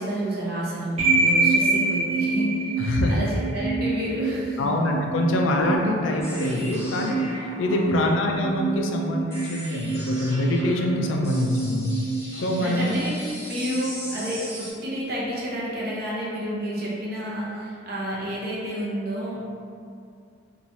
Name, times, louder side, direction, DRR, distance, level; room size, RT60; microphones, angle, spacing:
voice 1, 0.0-2.7 3.1-4.7 7.7-8.1 12.3-19.5, equal, 55° right, -6 dB, 0.7 m, -30 dB
sound 1, 1.0-13.0, right 3 dB, 40° right, 1.1 m, -27 dB
voice 2, 2.8-3.2 4.6-11.9 12.3-13.0, left 1 dB, 85° left, 1 dB, 0.4 m, -24 dB
sound 2, 6.2-14.7, equal, 15° left, 0.7 m, -39 dB
3.1 x 2.3 x 2.6 m, 2.3 s
head